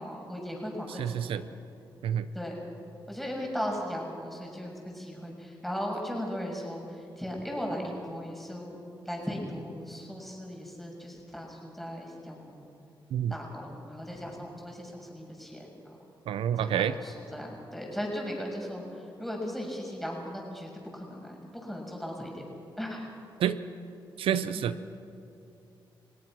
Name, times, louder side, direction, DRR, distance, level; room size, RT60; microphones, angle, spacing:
voice 1, 0.0-1.4 2.3-2.6 3.1-8.8 9.1-12.6 13.3-16.0 16.6-22.4 22.8-23.1 24.5-24.8, equal, ahead, -1 dB, 6.8 m, -37 dB
voice 2, 0.9-1.4 2.0-2.3 13.1-13.3 16.3-16.9 23.4-23.6 24.2-25.0, right 9 dB, 90° right, 13 dB, 0.6 m, -28 dB
30.0 x 17.5 x 6.2 m, 2.7 s
cardioid pair, 60°, 9 cm